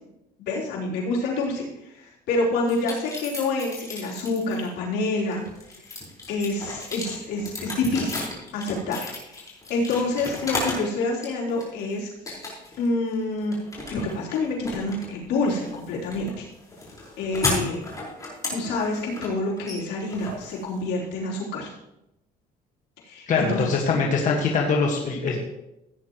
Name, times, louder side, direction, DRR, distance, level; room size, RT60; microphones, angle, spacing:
voice 1, 0.4-5.4 6.3-8.2 8.5-12.1 12.8-13.5 13.9-16.5 17.2-17.8 18.5-21.7 23.0-23.7, left 2 dB, 85° left, -4 dB, 3.6 m, -27 dB
sound 1, 2.7-4.7 5.2-10.9 11.2-11.8 12.3-12.9 13.1-21.1, left 2 dB, 20° left, 4.8 m, -34 dB
voice 2, 23.3-25.4, left 4 dB, 50° left, -1 dB, 1.7 m, -23 dB
16.5 x 9.4 x 3.1 m, 0.88 s
cardioid pair, 110°, 17 cm